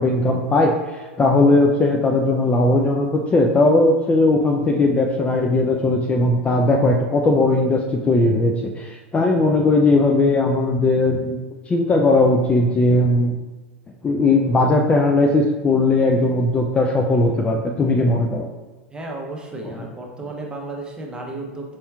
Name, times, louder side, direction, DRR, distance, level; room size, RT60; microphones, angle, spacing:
voice 1, 0.0-11.4 11.7-13.4 14.0-18.5, left 2 dB, 20° left, 1 dB, 0.3 m, -18 dB
voice 2, 18.9-21.8, right 2 dB, 10° right, 0 dB, 0.8 m, -33 dB
4.4 x 4.1 x 2.3 m, 1.3 s
hypercardioid pair, 95°, 7 cm